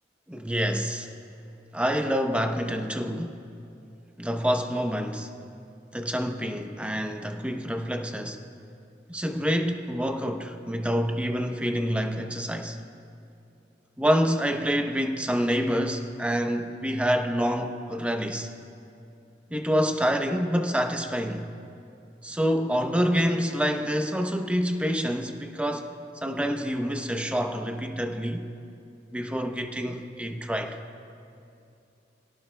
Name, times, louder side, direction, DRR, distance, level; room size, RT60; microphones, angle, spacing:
voice 1, 0.3-1.1 1.7-3.4 4.2-5.3 5.9-8.4 9.1-12.8 14.0-18.5 19.5-21.5 22.2-25.9 26.2-28.4 29.1-30.8, equal, 5° right, 5 dB, 0.8 m, -27 dB
26.0 x 17.5 x 2.2 m, 2.6 s
head